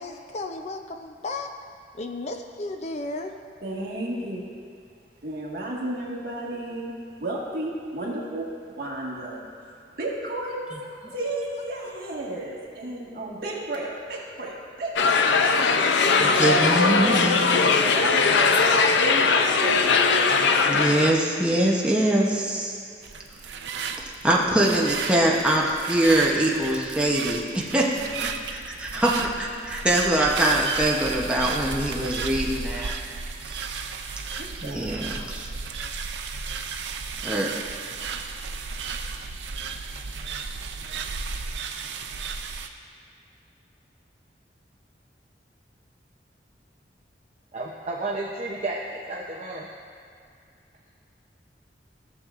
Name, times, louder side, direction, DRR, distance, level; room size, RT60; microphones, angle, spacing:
voice 1, 0.0-1.5 1.9-3.4 11.1-11.2 11.6-11.9, left 2 dB, 40° left, 5 dB, 0.5 m, -34 dB
voice 2, 3.6-4.5 5.2-15.2 16.1-18.6 19.0-20.3 34.4-35.0, right 1 dB, 60° right, -4 dB, 1.7 m, -33 dB
sound 1, 15.0-21.1, left 4 dB, 90° left, 0.5 m, -20 dB
voice 3, 16.2-17.6 20.7-22.8 24.0-32.9 33.5-33.8 34.6-35.5 37.2-37.5, right 1 dB, 5° right, -4 dB, 0.8 m, -23 dB
sound 2, 23.0-42.7, right 5 dB, 80° right, 0.5 m, -34 dB
voice 4, 47.5-49.7, right 2 dB, 40° right, -3 dB, 0.6 m, -32 dB
15.0 x 7.1 x 2.5 m, 2.4 s
head